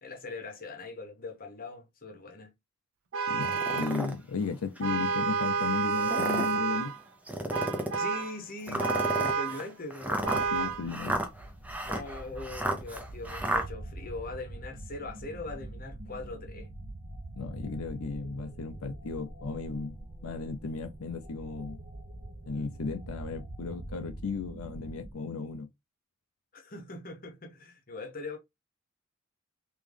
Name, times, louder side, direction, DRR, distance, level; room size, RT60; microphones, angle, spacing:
voice 1, 0.0-2.5 8.0-10.3 11.9-16.7 26.5-28.4, left 3 dB, 40° left, 0.9 m, -41 dB
Vehicle horn car horn honking, 3.1-4.0 4.8-7.0 7.5-8.3 8.8-9.6 10.2-10.9, right 5 dB, 70° right, 0.5 m, -30 dB
voice 2, 3.3-7.0 10.5-11.2 17.4-19.9 20.2-21.8 22.5-25.7, left 4 dB, 85° left, 0.5 m, -35 dB
sound 1, 3.4-4.1 4.8-4.9 5.9-6.6 7.3-8.0 8.7-13.7, right 1 dB, 5° right, 0.7 m, -32 dB
sound 2, 10.2-25.1, right 1 dB, 40° right, 0.8 m, -44 dB
3.6 x 3.0 x 3.4 m
head